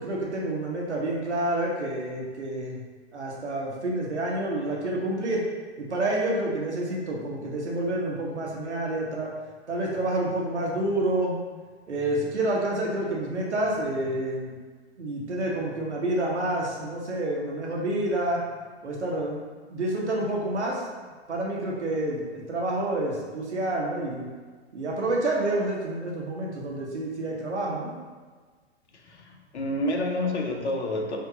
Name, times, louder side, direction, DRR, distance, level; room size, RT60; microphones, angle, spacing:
voice 1, 0.0-2.8 3.1-5.4 5.8-9.3 9.7-11.4 11.9-14.6 15.0-18.4 18.8-19.4 19.7-20.8 21.3-24.3 24.7-27.9, right 1 dB, 80° right, -3 dB, 1.1 m, -28 dB
voice 2, 28.9-31.2, left 1 dB, 75° left, 1 dB, 0.8 m, -29 dB
4.7 x 2.8 x 3.9 m, 1.5 s
figure-of-eight pair, 105°, 34 cm